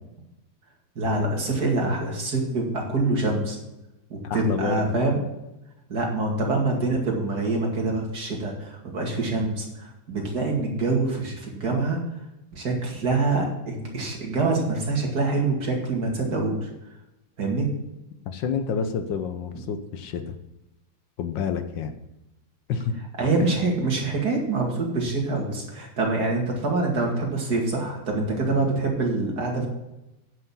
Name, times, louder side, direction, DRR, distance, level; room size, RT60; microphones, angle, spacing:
voice 1, 1.0-3.6 4.1-5.2 5.9-12.0 12.5-16.7 17.4-17.7 23.2-29.7, right 3 dB, 55° right, 0 dB, 2.9 m, -25 dB
voice 2, 4.2-4.8 18.3-20.3 21.2-21.9 22.7-23.0 23.4-23.5, left 6 dB, 75° left, 8 dB, 1.5 m, -28 dB
9.5 x 6.3 x 7.1 m, 0.93 s
omnidirectional pair, 2.1 m